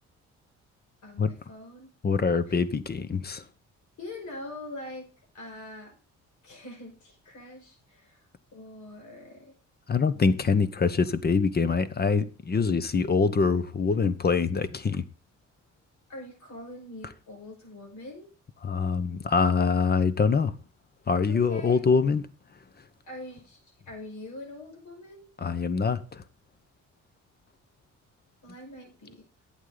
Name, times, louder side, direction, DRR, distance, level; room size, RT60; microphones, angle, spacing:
voice 1, 1.0-1.9 2.5-2.6 4.0-5.0 5.3-6.0 6.4-8.3 8.5-9.5 16.1-18.3 21.3-21.8 23.0-25.3 28.4-29.3, left 1 dB, 70° left, 5.6 m, -43 dB
voice 2, 2.0-3.4 9.9-15.0 18.6-20.5 21.1-22.2 25.4-26.2, left 5 dB, 30° left, 1.0 m, -24 dB
11.0 x 8.3 x 4.0 m
cardioid pair, 90°, 30 cm